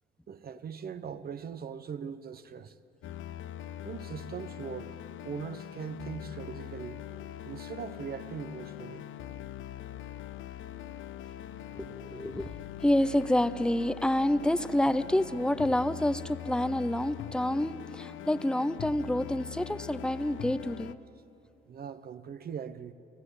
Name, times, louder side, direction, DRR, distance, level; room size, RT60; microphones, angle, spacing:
voice 1, 0.3-2.8 3.8-5.0 5.2-7.0 7.4-9.1 21.7-22.9, right 7 dB, 50° right, 1.0 m, -40 dB
sound 1, 3.0-20.9, left 11 dB, 80° left, 0.8 m, -42 dB
voice 2, 11.7-12.5 12.8-20.9, left 1 dB, 5° left, 0.7 m, -28 dB
29.5 x 14.5 x 8.4 m
cardioid pair, 90°, 20 cm